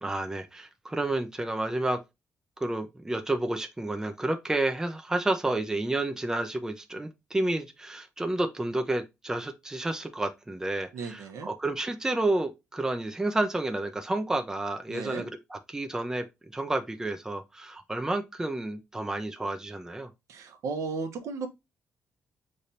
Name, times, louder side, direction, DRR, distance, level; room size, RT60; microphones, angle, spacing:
voice 1, 0.0-2.0 2.6-16.3 16.5-20.1, right 2 dB, 10° right, 0.6 m, -30 dB
voice 2, 10.9-11.5 14.9-15.2 20.3-21.5, right 4 dB, 75° right, 0.9 m, -35 dB
5.5 x 3.3 x 2.7 m
cardioid pair, 115°, 5 cm